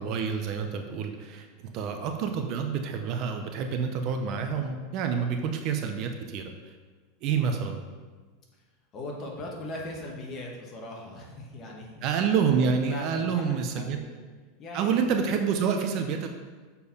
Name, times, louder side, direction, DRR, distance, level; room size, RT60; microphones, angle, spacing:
voice 1, 0.0-6.5 7.2-7.8 12.0-14.0 14.7-16.3, right 6 dB, 45° right, 5 dB, 0.7 m, -28 dB
voice 2, 8.9-12.0 12.9-14.1 14.6-14.9, left 1 dB, 30° left, -1 dB, 1.5 m, -39 dB
6.9 x 4.6 x 5.4 m, 1.4 s
supercardioid pair, 150°, 0 cm